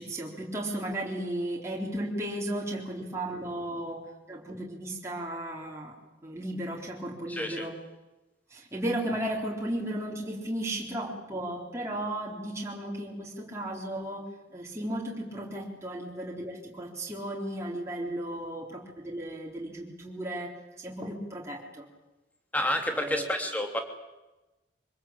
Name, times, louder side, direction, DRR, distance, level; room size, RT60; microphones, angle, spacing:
voice 1, 0.0-4.0 4.3-6.0 6.2-7.8 8.5-21.9 22.9-23.3, right 1 dB, 15° right, -3 dB, 3.7 m, -35 dB
voice 2, 7.3-7.7 22.5-23.8, left 1 dB, 10° left, 4 dB, 2.7 m, -29 dB
24.5 x 20.0 x 8.7 m, 1.1 s
head